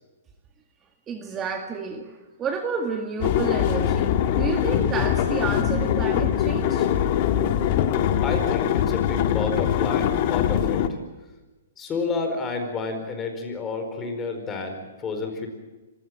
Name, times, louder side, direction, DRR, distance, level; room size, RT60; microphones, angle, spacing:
voice 1, 1.1-6.9, right 5 dB, 20° right, 4 dB, 1.9 m, -30 dB
sound 1, 3.2-10.9, left 10 dB, 45° left, 1.7 m, -22 dB
voice 2, 8.2-10.8 11.8-15.5, left 4 dB, 20° left, 5 dB, 4.7 m, -30 dB
26.0 x 16.0 x 9.0 m, 1.2 s
hypercardioid pair, 140°, 0 cm